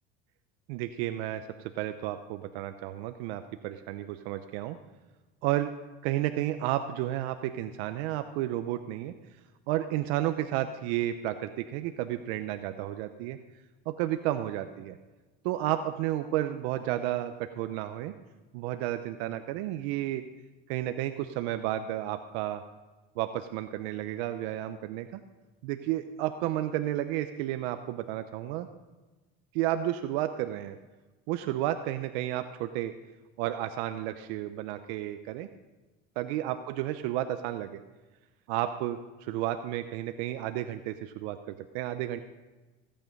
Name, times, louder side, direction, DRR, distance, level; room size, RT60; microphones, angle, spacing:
voice 1, 0.7-4.8 5.4-5.7 6.0-9.1 9.7-13.4 13.9-15.0 15.4-18.1 18.5-20.2 20.7-22.6 23.2-25.2 25.6-28.7 29.5-30.8 31.3-32.9 33.4-35.5 36.2-37.8 38.5-42.2, right 13 dB, 80° right, 9 dB, 0.8 m, -32 dB
16.5 x 8.9 x 5.3 m, 1.2 s
supercardioid pair, 90°, 31 cm